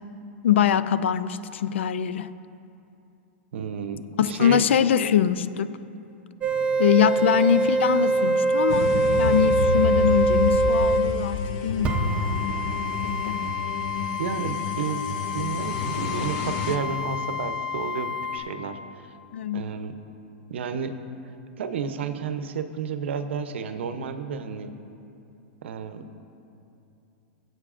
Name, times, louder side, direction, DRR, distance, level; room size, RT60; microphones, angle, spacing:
voice 1, 0.4-2.3 4.2-5.8 6.8-12.4 13.0-13.4 19.3-19.7, left 9 dB, 85° left, 14 dB, 0.4 m, -23 dB
voice 2, 3.5-4.6 13.4-13.6 14.2-15.0 15.3-19.1 19.5-19.9 20.5-20.9 21.6-24.7 25.6-26.1, right 6 dB, 80° right, 9 dB, 0.7 m, -31 dB
sound 1, 6.4-11.0 11.8-18.4, right 2 dB, 20° right, 0.8 m, -25 dB
sound 2, 8.7-16.8, left 4 dB, 45° left, 0.7 m, -30 dB
19.5 x 7.8 x 2.5 m, 2.8 s
supercardioid pair, 150°, 6 cm